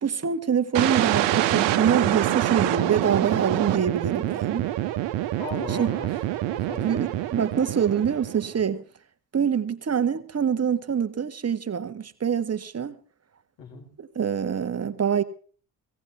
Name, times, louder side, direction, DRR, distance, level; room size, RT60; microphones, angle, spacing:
voice 1, 0.0-4.7 5.7-6.0 6.8-8.8 9.3-13.0 14.0-15.2, right 7 dB, 30° right, 1.5 m, -25 dB
sound 1, 0.8-8.6, right 14 dB, 70° right, 1.1 m, -26 dB
voice 2, 5.4-6.1 6.4-7.0 13.6-13.9, left 4 dB, 65° left, 5.0 m, -38 dB
17.0 x 17.0 x 3.5 m
hypercardioid pair, 45°, 47 cm